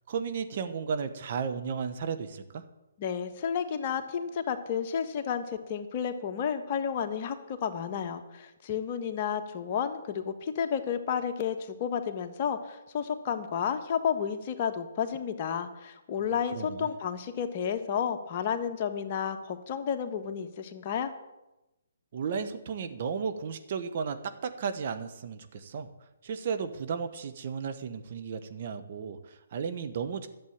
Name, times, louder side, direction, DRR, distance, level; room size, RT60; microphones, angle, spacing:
voice 1, 0.1-2.6 16.5-16.9 22.1-25.9 26.2-30.3, right 6 dB, 50° right, 8 dB, 1.2 m, -34 dB
voice 2, 3.0-21.1, left 7 dB, 40° left, 6 dB, 1.3 m, -31 dB
11.5 x 7.5 x 8.7 m, 0.96 s
figure-of-eight pair, 140°, 0 cm